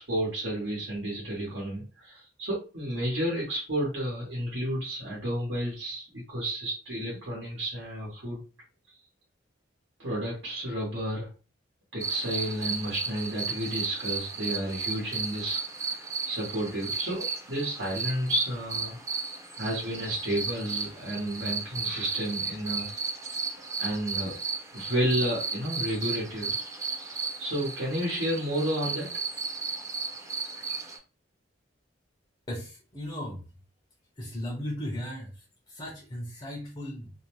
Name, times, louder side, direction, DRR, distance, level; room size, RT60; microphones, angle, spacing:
voice 1, 0.0-8.4 10.0-11.3 11.9-19.0 19.6-22.9 23.8-24.4 24.7-26.5 27.0-29.1, equal, 75° right, -4 dB, 1.1 m, -31 dB
sound 1, 12.0-31.0, right 4 dB, 15° right, 0.6 m, -34 dB
voice 2, 32.5-33.5 34.2-37.1, equal, 30° left, 0 dB, 0.6 m, -37 dB
2.6 x 2.1 x 3.0 m, 0.33 s
head